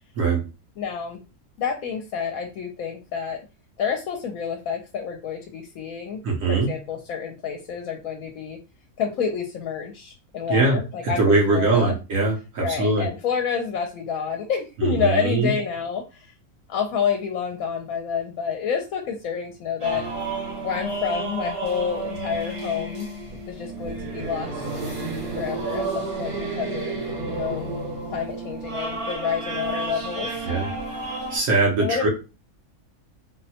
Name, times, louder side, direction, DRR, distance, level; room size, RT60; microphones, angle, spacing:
voice 1, 0.8-1.2 1.6-3.4 3.8-8.6 9.0-12.0 12.6-16.3 16.7-20.0 20.6-23.1 23.5-24.7 25.4-27.7 28.1-30.5 31.8-32.1, left 7 dB, 75° left, 3 dB, 1.0 m, -28 dB
voice 2, 6.2-6.7 10.5-13.1 14.8-15.5 30.4-30.7 31.3-32.1, right 3 dB, 70° right, 0 dB, 1.2 m, -22 dB
sound 1, 19.8-31.4, right 3 dB, 25° right, 0.8 m, -31 dB
3.8 x 2.1 x 2.7 m, 0.29 s
omnidirectional pair, 1.5 m